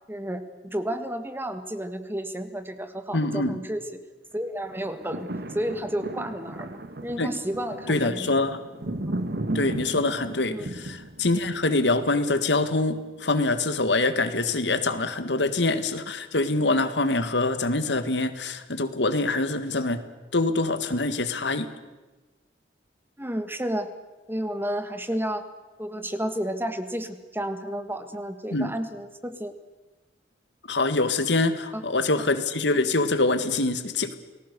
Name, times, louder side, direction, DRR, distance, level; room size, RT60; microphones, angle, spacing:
voice 1, 0.1-4.0 4.3-5.3 5.5-8.3 10.5-10.7 23.2-23.9 24.3-25.5 25.8-29.5 31.7-31.8, right 1 dB, 15° right, 9 dB, 1.6 m, -31 dB
voice 2, 3.1-3.6 7.2-7.3 7.9-8.6 9.5-20.0 20.3-21.7 28.5-28.7 30.7-34.1, left 2 dB, 85° left, 10 dB, 1.8 m, -25 dB
sound 1, 4.7-13.0 13.5-13.6, right 1 dB, 65° right, 1.7 m, -36 dB
29.0 x 19.5 x 6.9 m, 1.2 s
head